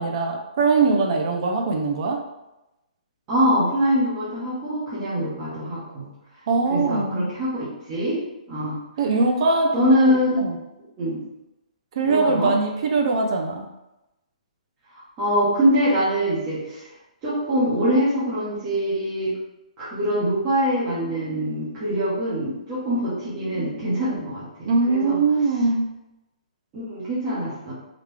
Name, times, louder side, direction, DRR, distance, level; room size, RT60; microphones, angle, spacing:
voice 1, 0.0-2.2 6.5-7.3 9.0-10.5 12.0-13.7 24.7-25.9, right 3 dB, 40° right, 3 dB, 0.5 m, -22 dB
voice 2, 3.3-6.1 6.7-8.2 8.5-8.8 9.7-10.4 11.0-11.2 12.0-12.5 15.2-16.9 17.2-19.3 19.8-25.2 26.7-27.7, equal, 20° right, -11 dB, 1.2 m, -23 dB
3.8 x 3.2 x 3.5 m, 0.92 s
hypercardioid pair, 170°, 4 cm